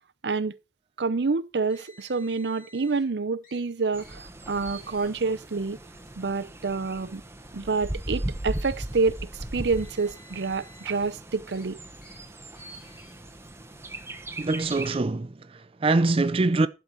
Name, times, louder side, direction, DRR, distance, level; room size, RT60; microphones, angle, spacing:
voice 1, 0.2-0.5 1.0-5.8 6.2-7.2 7.5-11.8, right 4 dB, 75° right, 0.7 m, -28 dB
Car, 1.7-3.0 3.4-3.6 4.0-4.2 4.5-5.1 5.9-6.1 7.1-7.2 9.4-11.1 11.5-11.7 12.0-12.2 12.6-13.1, left 1 dB, 50° left, 3.9 m, -54 dB
Bird, 3.9-15.0, right 1 dB, 15° right, 1.1 m, -38 dB
voice 2, 14.4-16.7, right 3 dB, 30° right, 0.5 m, -24 dB
11.5 x 4.7 x 6.8 m
head